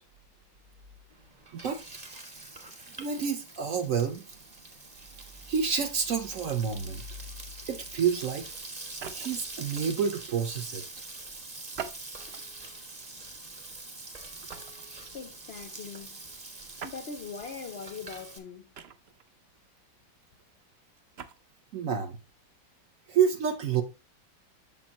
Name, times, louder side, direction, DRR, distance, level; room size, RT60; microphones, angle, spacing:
Frying (food), 1.1-18.4, right 2 dB, 25° right, 1.2 m, -44 dB
voice 1, 3.0-4.2 5.5-7.0 7.7-8.5 9.1-10.8 15.0-15.1 21.7-22.2 23.1-23.8, right 7 dB, 55° right, 1.0 m, -28 dB
sound 1, 8.8-9.5 11.7-12.5 13.1-13.3 14.5-14.9 16.8-17.0 18.7-19.3 21.0-21.4, right 7 dB, 80° right, 0.5 m, -42 dB
voice 2, 15.1-16.2 16.7-18.7, left 6 dB, 70° left, 0.6 m, -41 dB
7.0 x 7.0 x 2.9 m
omnidirectional pair, 1.9 m